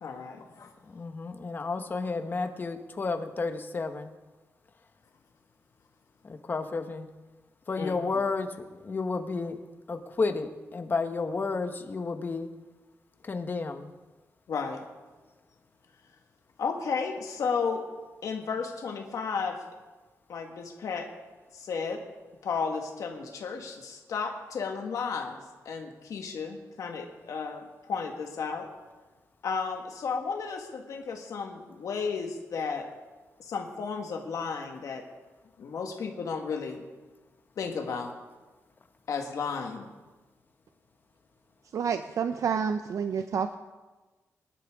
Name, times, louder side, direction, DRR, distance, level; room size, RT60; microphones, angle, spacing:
voice 1, 0.0-0.7 7.8-7.9 14.5-14.8 16.6-17.8 18.2-19.6 20.3-21.1 21.5-22.0 22.4-28.7 29.4-32.9 33.4-35.0 35.6-36.8 37.6-38.1 39.1-39.9, left 5 dB, 75° left, 2 dB, 1.6 m, -33 dB
voice 2, 0.9-4.1 6.2-7.1 7.7-8.5 8.8-9.6 9.9-12.5 13.2-13.9, left 4 dB, 35° left, 7 dB, 1.1 m, -31 dB
voice 3, 41.7-43.6, right 6 dB, 65° right, 8 dB, 0.6 m, -29 dB
23.5 x 11.5 x 3.6 m, 1.3 s
wide cardioid pair, 130°, 6 cm